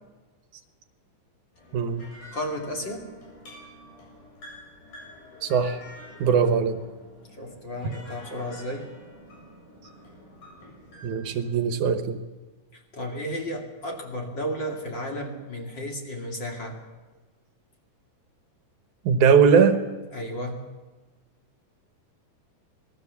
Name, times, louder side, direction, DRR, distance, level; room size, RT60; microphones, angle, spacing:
sound 1, 1.5-11.5, left 1 dB, 70° left, 9.2 m, -48 dB
voice 1, 1.7-2.0 5.4-5.8 6.2-6.8 7.8-8.0 11.0-12.2 19.1-19.8, right 6 dB, 70° right, 9 dB, 2.5 m, -20 dB
voice 2, 2.3-3.1 7.3-8.9 12.7-16.8 20.1-20.7, equal, 35° left, 1 dB, 3.0 m, -33 dB
26.0 x 19.0 x 7.1 m, 1.3 s
omnidirectional pair, 3.7 m